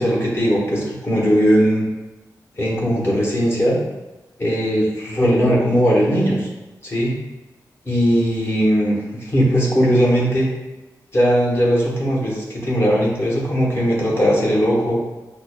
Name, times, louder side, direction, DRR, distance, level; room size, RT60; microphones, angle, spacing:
voice 1, 0.0-1.8 2.6-3.8 4.4-6.5 6.8-7.1 7.9-8.9 9.2-10.5 11.1-15.0, equal, 35° left, -4 dB, 1.0 m, -18 dB
5.9 x 2.1 x 2.3 m, 1.1 s
wide cardioid pair, 105°, 7 cm